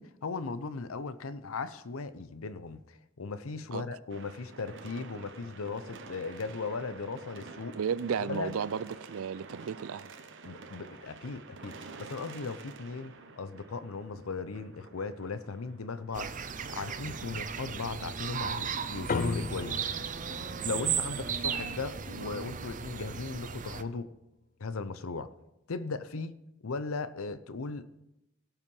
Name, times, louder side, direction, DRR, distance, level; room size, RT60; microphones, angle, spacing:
voice 1, 0.0-7.8 8.2-8.5 10.4-16.4 16.7-19.8 20.6-24.1 24.6-25.3 25.7-26.4 26.6-28.0, left 4 dB, 80° left, 0.7 m, -37 dB
sound 1, 4.1-17.3, right 4 dB, 60° right, 1.0 m, -49 dB
voice 2, 7.8-10.1, right 7 dB, 90° right, 0.4 m, -33 dB
sound 2, 16.1-23.8, right 7 dB, 40° right, 0.6 m, -36 dB
sound 3, 19.1-23.8, left 4 dB, 40° left, 0.5 m, -39 dB
17.0 x 5.7 x 5.4 m
head